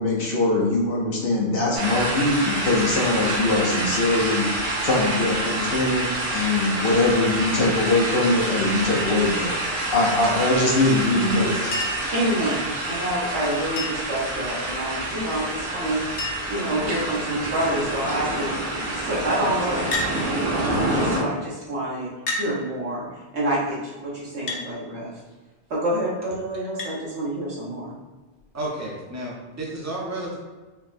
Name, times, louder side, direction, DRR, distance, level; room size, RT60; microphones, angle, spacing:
voice 1, 0.0-11.8, left 2 dB, 60° left, -2 dB, 0.8 m, -22 dB
sound 1, 1.7-21.2, right 1 dB, 60° right, 0.9 m, -27 dB
Chink clink, 11.7-12.2 13.8-14.2 15.5-15.6 15.8-15.9 16.2-16.6 17.4-17.8 19.9-20.2 21.2-21.3 22.3-22.5 24.5-24.7 26.8-27.0 28.4-28.5, left 2 dB, 85° left, 1.0 m, -29 dB
voice 2, 12.1-16.0 16.5-23.1 23.3-25.1 25.7-27.9, right 1 dB, 80° right, -5 dB, 1.2 m, -28 dB
voice 3, 28.5-30.3, right 1 dB, 20° right, -4 dB, 0.5 m, -31 dB
4.6 x 2.0 x 2.5 m, 1.2 s
omnidirectional pair, 1.1 m